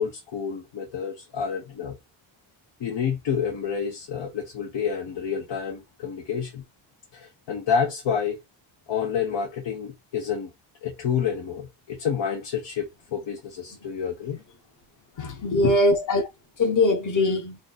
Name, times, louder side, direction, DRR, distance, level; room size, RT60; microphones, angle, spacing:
voice 1, 0.0-2.0 2.8-6.6 7.1-8.4 8.9-10.5 10.8-14.4 15.2-15.7, left 7 dB, 65° left, 1.1 m, -29 dB
voice 2, 15.2-16.3 16.6-17.6, left 2 dB, 40° left, 1.2 m, -22 dB
3.3 x 2.6 x 3.9 m
wide cardioid pair, 150°, 48 cm